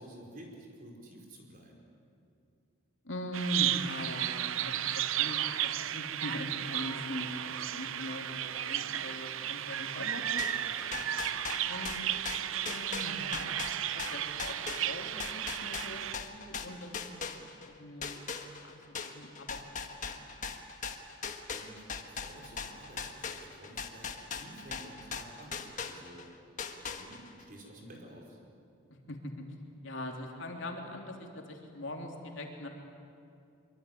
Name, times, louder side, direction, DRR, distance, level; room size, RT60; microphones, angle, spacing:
voice 1, 0.0-1.8 10.6-11.1 21.5-26.3 26.8-28.4, right 1 dB, 40° right, 0 dB, 4.9 m, -51 dB
voice 2, 3.0-10.4 11.6-13.5 13.9-16.0 16.3-20.5 29.1-29.3 29.8-32.7, left 1 dB, 60° left, 1 dB, 3.3 m, -42 dB
Bird vocalization bird call bird song, 3.3-16.1, right 11 dB, 70° right, 0.6 m, -34 dB
sound 1, 10.4-17.7 18.0-26.3 26.6-27.4, left 5 dB, 35° left, 1.5 m, -39 dB
24.0 x 24.0 x 9.6 m, 2.5 s
head